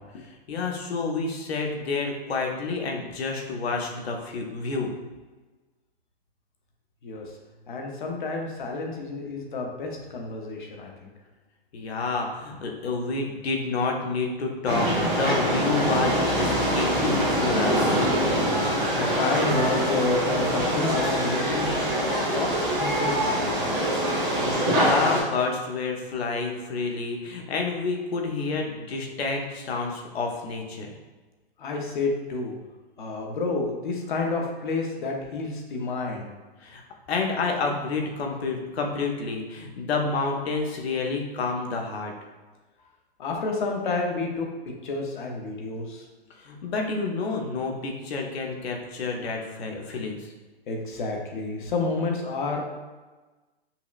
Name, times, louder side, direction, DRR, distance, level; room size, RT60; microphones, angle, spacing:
voice 1, 0.5-4.9 11.7-18.0 24.1-30.9 36.6-36.8 37.1-42.1 46.4-50.3, left 4 dB, 85° left, 1 dB, 0.8 m, -29 dB
voice 2, 7.7-11.1 18.9-21.7 22.0-23.5 31.6-32.5 33.0-36.3 43.2-44.5 44.8-46.0 50.7-52.6, left 3 dB, 55° left, 2 dB, 0.7 m, -29 dB
sound 1, 14.6-25.2, equal, 15° right, 0.8 m, -24 dB
5.5 x 2.0 x 2.4 m, 1.2 s
hypercardioid pair, 180°, 30 cm